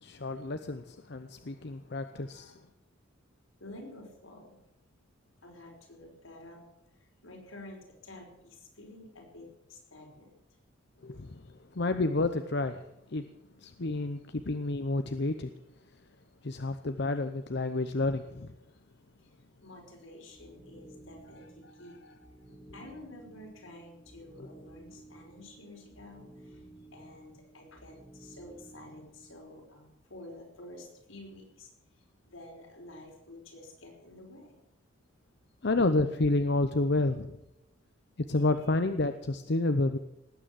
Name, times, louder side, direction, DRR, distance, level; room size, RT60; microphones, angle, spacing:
voice 1, 0.0-2.6 11.0-13.3 13.6-15.5 16.4-18.5 35.6-37.4 38.2-40.0, left 2 dB, 55° left, 9 dB, 0.7 m, -30 dB
voice 2, 3.6-4.6 5.4-6.6 6.9-10.3 19.2-19.3 19.6-22.0 22.7-26.6 26.9-34.6, left 1 dB, 80° left, 0 dB, 5.1 m, -50 dB
sound 1, 20.3-29.5, right 2 dB, ahead, 2.2 m, -54 dB
19.0 x 9.1 x 7.5 m, 0.88 s
head